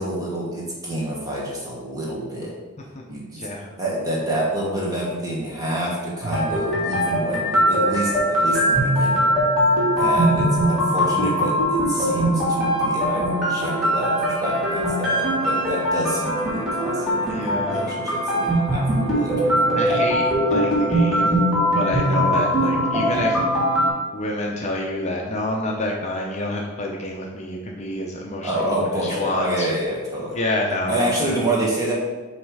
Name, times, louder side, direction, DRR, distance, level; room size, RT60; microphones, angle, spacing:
voice 1, 0.0-2.5 3.1-3.5 3.8-9.3 9.9-20.1 22.0-22.4 28.4-30.4 30.9-31.9, right 1 dB, 15° right, -4 dB, 1.4 m, -28 dB
voice 2, 3.4-3.7 10.0-10.3 17.3-17.9 19.7-21.4 21.7-23.4 24.1-29.7 30.3-31.4, left 1 dB, 30° left, -1 dB, 0.6 m, -28 dB
sound 1, 6.2-23.9, equal, ahead, 2.1 m, -21 dB
7.4 x 3.2 x 4.7 m, 1.3 s
head